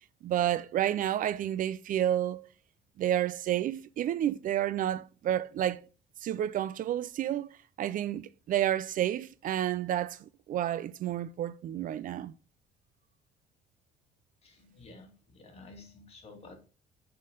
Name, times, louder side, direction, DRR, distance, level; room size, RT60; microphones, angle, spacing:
voice 1, 0.2-2.5 3.0-5.9 6.2-7.5 7.8-12.3, right 11 dB, 55° right, 0.4 m, -30 dB
voice 2, 14.4-16.7, left 3 dB, 35° left, 2.4 m, -52 dB
8.3 x 4.3 x 3.7 m
cardioid pair, 110°, 17 cm